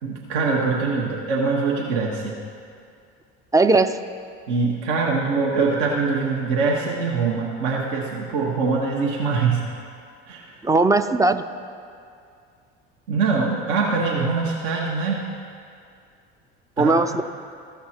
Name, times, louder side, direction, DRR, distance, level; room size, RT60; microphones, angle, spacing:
voice 1, 0.0-2.4 4.5-9.6 10.3-10.6 13.1-15.2 16.8-17.2, right 4 dB, 70° right, -3 dB, 1.3 m, -23 dB
voice 2, 3.5-4.0 10.6-11.4 16.8-17.2, right 3 dB, 10° right, 9 dB, 0.4 m, -18 dB
14.0 x 5.8 x 4.4 m, 2.3 s
hypercardioid pair, 70°, 33 cm